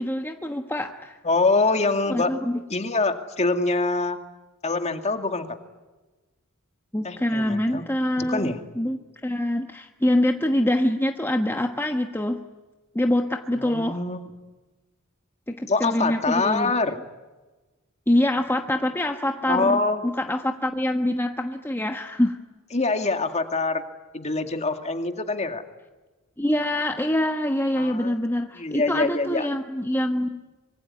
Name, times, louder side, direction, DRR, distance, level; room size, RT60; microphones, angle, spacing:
voice 1, 0.0-1.2 2.1-2.6 6.9-12.4 12.9-14.0 15.5-16.7 18.1-22.4 26.4-30.4, left 1 dB, 10° left, 4 dB, 1.2 m, -25 dB
voice 2, 1.2-2.3 2.7-4.2 4.6-5.4 7.0-7.8 8.2-8.6 13.5-14.3 15.7-16.9 19.5-20.0 22.7-23.8 24.1-25.6 27.8-28.1 28.6-29.5, left 3 dB, 30° left, 7 dB, 2.2 m, -24 dB
25.5 x 24.0 x 9.6 m, 1.2 s
head